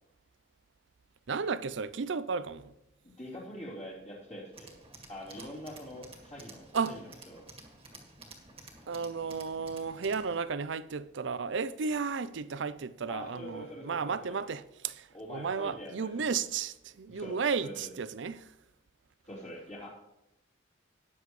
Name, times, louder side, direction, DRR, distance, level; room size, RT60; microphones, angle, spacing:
voice 1, 1.3-2.7 6.7-6.9 8.9-18.5, right 5 dB, 70° right, 0.5 m, -33 dB
voice 2, 3.0-4.8 5.1-7.5 13.1-14.4 15.1-16.3 17.1-17.9 19.3-19.9, equal, 35° left, 3.4 m, -44 dB
Tools, 4.5-10.4, right 3 dB, 30° right, 1.8 m, -52 dB
19.0 x 7.1 x 3.2 m
head